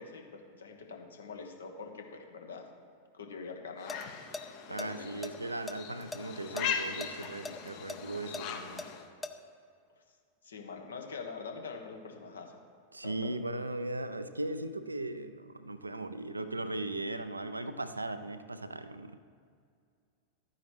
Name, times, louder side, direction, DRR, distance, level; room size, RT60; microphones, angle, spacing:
voice 1, 0.0-2.7 3.1-4.1 4.7-5.1 10.4-12.6 13.0-13.3, left 5 dB, 70° left, 4 dB, 1.2 m, -44 dB
sound 1, 3.7-4.0 4.3-4.4 4.8-6.2 6.6-6.7 7.0-9.3, left 2 dB, 10° left, 0.5 m, -40 dB
sound 2, 3.8-9.1, left 7 dB, 45° left, 0.8 m, -39 dB
voice 2, 4.7-8.8 12.9-19.2, right 2 dB, 80° right, 11 dB, 0.4 m, -38 dB
12.5 x 9.3 x 3.3 m, 2.3 s
figure-of-eight pair, 90°, 0 cm